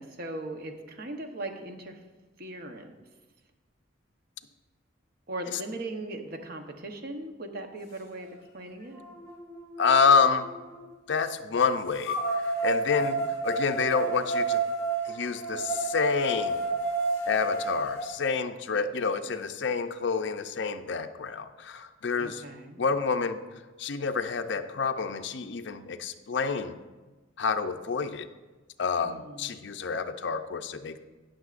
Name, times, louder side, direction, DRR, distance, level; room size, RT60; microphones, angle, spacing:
voice 1, 0.0-2.0 2.4-2.9 5.3-9.0 13.0-13.2 22.2-22.8 29.0-29.5, right 2 dB, 50° right, 5 dB, 0.9 m, -39 dB
sound 1, 8.2-8.3 8.9-10.8 12.0-18.1, right 3 dB, 20° left, 2.4 m, -30 dB
voice 2, 9.8-10.5 11.1-14.6 15.1-16.6 17.2-22.4 22.8-23.4 23.8-26.8 27.4-28.3 28.8-31.0, left 5 dB, 60° left, 8 dB, 0.5 m, -28 dB
17.5 x 6.4 x 2.5 m, 1.2 s
head